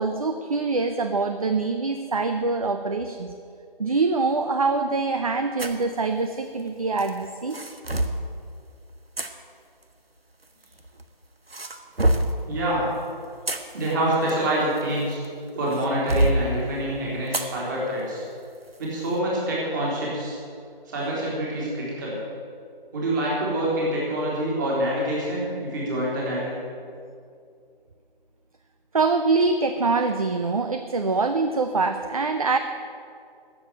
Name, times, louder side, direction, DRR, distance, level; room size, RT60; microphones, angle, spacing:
voice 1, 0.0-3.3 3.8-7.6 28.9-32.6, right 3 dB, 40° right, 7 dB, 0.6 m, -24 dB
sound 1, 5.6-5.8 7.0-8.2 9.2-9.3 10.4-11.0 11.5-12.4 13.2-15.3 15.7-16.4 17.3-17.5 18.0-18.1 18.7-18.9, right 1 dB, 90° right, 1.5 m, -25 dB
voice 2, 12.4-12.9 13.7-15.2 15.6-18.2 18.8-20.4 20.9-22.2 22.9-26.6, right 1 dB, 20° right, -5 dB, 3.5 m, -26 dB
14.0 x 7.6 x 9.1 m, 2.3 s
figure-of-eight pair, 160°, 29 cm